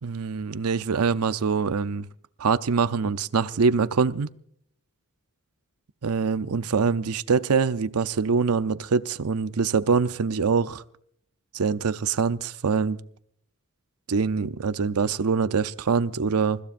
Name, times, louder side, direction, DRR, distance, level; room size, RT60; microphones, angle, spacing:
voice 1, 0.0-2.1 2.4-4.3 6.0-10.8 11.5-13.0 14.1-16.6, right 5 dB, 80° right, 0.6 m, -24 dB
28.0 x 15.0 x 2.6 m
head